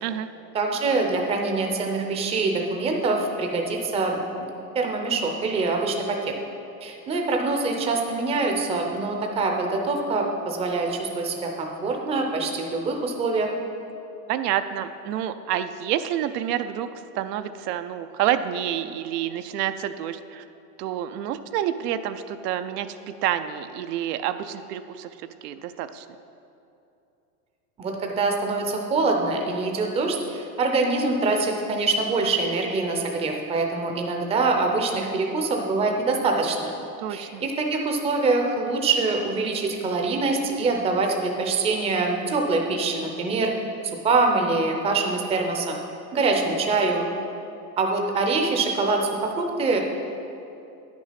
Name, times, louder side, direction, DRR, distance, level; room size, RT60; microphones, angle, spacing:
voice 1, 0.5-6.3 6.8-13.5 27.8-36.7 37.1-43.5 44.0-45.8 46.1-47.1 47.8-49.8, right 3 dB, 15° right, 2 dB, 0.5 m, -24 dB
voice 2, 14.3-16.9 17.1-20.4 20.8-26.1 37.0-37.4, right 11 dB, 75° right, 10 dB, 0.6 m, -28 dB
9.5 x 6.2 x 5.7 m, 2.7 s
supercardioid pair, 145°, 47 cm